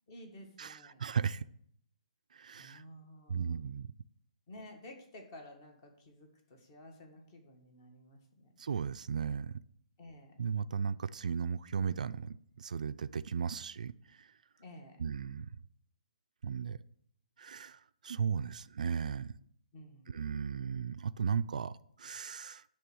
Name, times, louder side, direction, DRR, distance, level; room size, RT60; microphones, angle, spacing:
voice 1, 0.1-1.0 2.6-3.6 4.5-8.5 10.0-10.4 14.6-15.0 19.7-20.2, left 1 dB, 35° left, 1.6 m, -53 dB
voice 2, 0.6-1.4 2.3-2.8 3.3-3.9 8.6-9.6 10.4-14.3 15.0-15.5 16.4-16.8 17.4-19.3 20.1-22.6, right 6 dB, 70° right, 0.3 m, -36 dB
9.7 x 3.3 x 6.2 m
hypercardioid pair, 160°, 4 cm